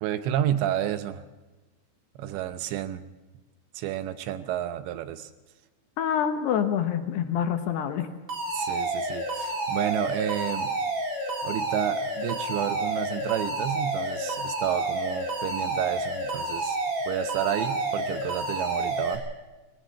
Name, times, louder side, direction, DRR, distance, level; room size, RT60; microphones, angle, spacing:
voice 1, 0.0-1.2 2.2-3.0 3.7-5.3 8.5-10.7 11.4-16.8 17.1-19.3, right 11 dB, 80° right, 11 dB, 2.8 m, -30 dB
voice 2, 6.0-8.1, left 8 dB, 70° left, 7 dB, 2.8 m, -26 dB
Alarm, 8.3-19.1, right 2 dB, 30° right, 3.9 m, -30 dB
20.5 x 18.0 x 7.4 m, 1.2 s
omnidirectional pair, 5.5 m